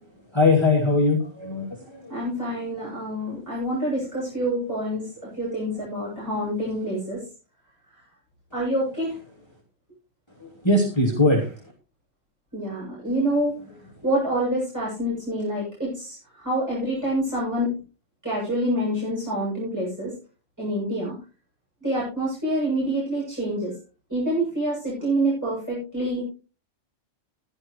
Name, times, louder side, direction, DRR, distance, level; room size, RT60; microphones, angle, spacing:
voice 1, 0.3-2.2 2.8-2.9 10.4-11.5, left 2 dB, 20° left, -1 dB, 2.6 m, -21 dB
voice 2, 2.1-7.2 8.5-9.1 12.5-13.5 14.0-17.7 18.2-20.1 20.6-21.2 21.8-23.7 24.1-26.2, right 1 dB, 15° right, -7 dB, 7.9 m, -27 dB
15.5 x 11.5 x 3.1 m, 0.32 s
omnidirectional pair, 1.3 m